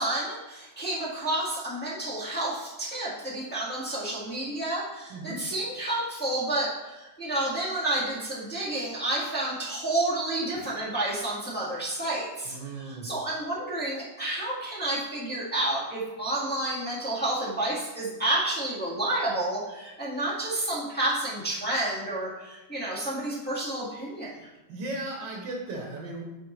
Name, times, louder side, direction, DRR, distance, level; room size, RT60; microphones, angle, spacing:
voice 1, 0.0-12.5 12.8-24.3, right 1 dB, 5° left, -8 dB, 1.7 m, -30 dB
voice 2, 5.1-5.4 12.4-13.1 24.7-26.2, right 2 dB, 65° right, 0 dB, 1.6 m, -36 dB
8.4 x 4.5 x 3.2 m, 1.1 s
omnidirectional pair, 2.2 m